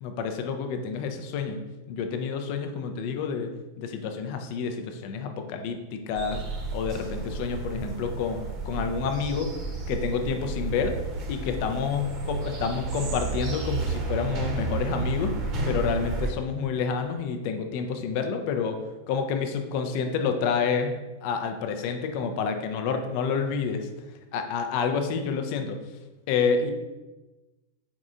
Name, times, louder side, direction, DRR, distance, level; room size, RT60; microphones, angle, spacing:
voice 1, 0.0-1.6 1.9-3.5 3.8-6.4 6.7-9.5 9.9-11.0 11.3-15.4 15.7-23.9 24.3-25.8 26.3-26.7, left 6 dB, 45° left, 6 dB, 0.4 m, -29 dB
sound 1, 6.1-16.3, right 3 dB, 35° right, 0.8 m, -32 dB
4.2 x 3.5 x 2.5 m, 1.1 s
figure-of-eight pair, 90°, 0 cm